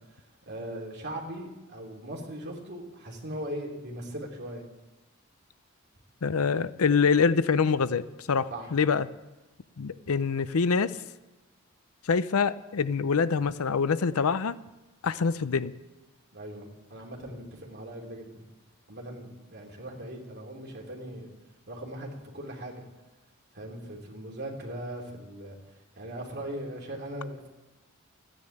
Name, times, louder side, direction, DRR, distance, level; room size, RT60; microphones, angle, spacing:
voice 1, 0.4-4.6 8.5-8.8 16.3-18.5 18.9-21.3 21.7-22.8 23.5-25.6 25.9-27.5, right 1 dB, 50° right, 0 dB, 3.1 m, -39 dB
voice 2, 6.2-9.1 9.8-10.9 12.1-14.5 15.0-15.7, left 5 dB, 80° left, 15 dB, 0.6 m, -25 dB
14.5 x 10.0 x 8.7 m, 1.1 s
head